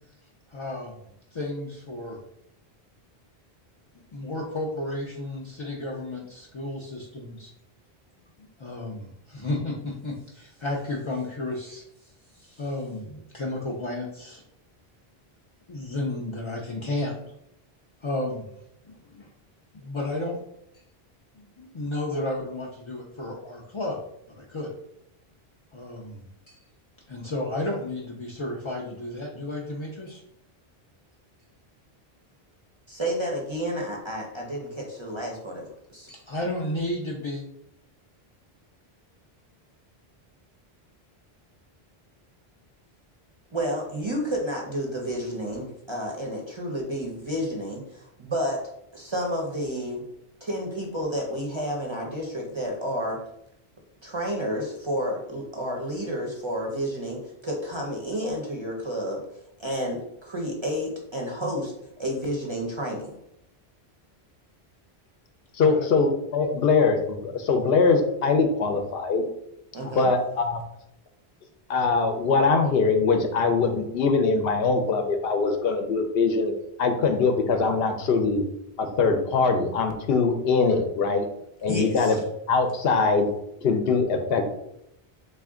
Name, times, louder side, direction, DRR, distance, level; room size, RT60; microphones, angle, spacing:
voice 1, 0.5-1.0 1.3-2.2 4.1-7.5 8.4-14.4 15.7-17.2 18.0-18.4 18.9-19.3 19.7-20.4 21.3-24.0 24.3-24.7 25.7-26.6 27.1-30.2 36.1-37.4 65.6-65.9, left 1 dB, 55° left, -2 dB, 0.3 m, -33 dB
voice 2, 32.9-36.1 43.5-48.6 48.9-50.0 50.4-53.2 54.0-59.2 59.6-61.7 62.0-63.2 69.7-70.1 81.7-82.2, equal, 35° right, -1 dB, 0.6 m, -30 dB
voice 3, 65.5-69.2 70.0-70.6 71.7-78.4 78.8-81.3 81.6-82.2 82.5-83.3 83.6-84.5, left 4 dB, 70° left, 6 dB, 0.8 m, -22 dB
3.3 x 2.5 x 3.6 m, 0.77 s
omnidirectional pair, 1.1 m